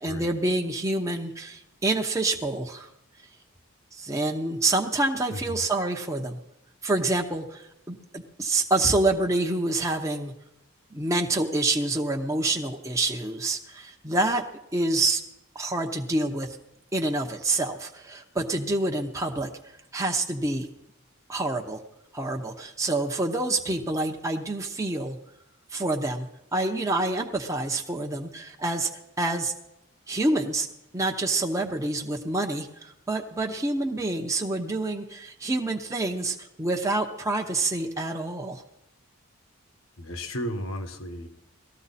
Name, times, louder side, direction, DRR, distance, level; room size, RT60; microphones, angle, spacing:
voice 1, 0.0-2.9 3.9-6.4 6.8-10.3 10.9-14.4 14.7-15.2 15.5-16.6 16.9-19.5 19.9-20.7 21.3-21.8 22.1-25.2 25.7-28.9 29.2-29.5 30.1-30.7 30.9-38.6, right 2 dB, 15° right, 2 dB, 0.8 m, -27 dB
voice 2, 5.3-5.6 40.0-41.3, equal, 85° left, 6 dB, 1.6 m, -34 dB
18.5 x 14.0 x 4.2 m, 0.85 s
head